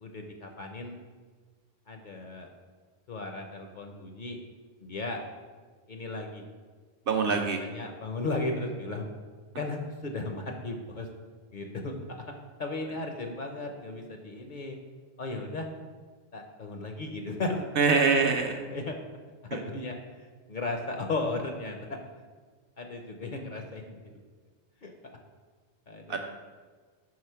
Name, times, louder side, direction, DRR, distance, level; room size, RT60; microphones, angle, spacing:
voice 1, 0.0-0.9 1.9-2.5 3.1-4.4 4.8-5.2 5.9-6.4 7.2-9.0 9.6-11.1 11.5-11.9 12.6-14.8 15.2-15.7 16.3-17.7 18.1-18.2 18.7-19.0 19.5-20.0 20.5-22.0 22.8-24.0 24.8-24.9 25.9-26.2, left 2 dB, 55° left, 3 dB, 0.6 m, -35 dB
voice 2, 7.1-7.6 17.8-18.6 19.5-19.6 26.1-26.2, right 5 dB, 60° right, 4 dB, 0.7 m, -24 dB
4.8 x 3.9 x 5.6 m, 1.4 s
omnidirectional pair, 1.2 m